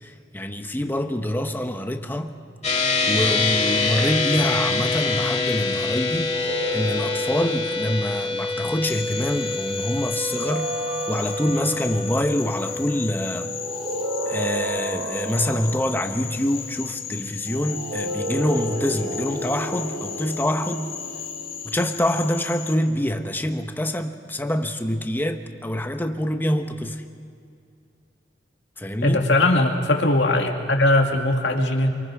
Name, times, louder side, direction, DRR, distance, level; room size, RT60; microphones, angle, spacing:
voice 1, 0.0-2.3 3.1-6.3 6.7-10.7 11.1-13.5 14.2-20.9 21.6-27.0 28.8-29.2, left 1 dB, 10° left, 6 dB, 1.1 m, -25 dB
sound 1, 2.6-16.2, left 3 dB, 40° left, 2.6 m, -27 dB
sound 2, 6.0-8.5 10.2-12.0 13.4-16.1 17.5-22.0, right 1 dB, 75° right, 5.1 m, -32 dB
Frog, 8.9-22.7, left 8 dB, 55° left, 1.9 m, -36 dB
voice 2, 29.0-32.0, left 2 dB, 75° left, 3 dB, 2.3 m, -20 dB
27.5 x 24.5 x 4.8 m, 2.4 s
head